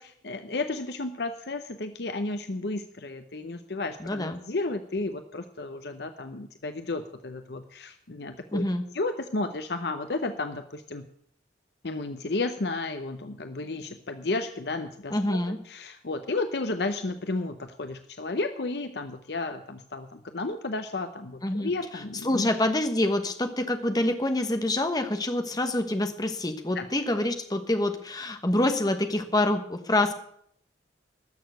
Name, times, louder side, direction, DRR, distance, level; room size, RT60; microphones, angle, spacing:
voice 1, 0.0-8.6 8.9-11.1 11.8-15.4 15.7-22.5 26.7-26.9, left 2 dB, 60° left, 8 dB, 0.8 m, -32 dB
voice 2, 4.0-4.4 8.5-8.8 15.1-15.6 21.4-21.7 22.2-30.1, left 1 dB, 20° left, 7 dB, 1.2 m, -26 dB
13.0 x 6.8 x 9.2 m, 0.69 s
head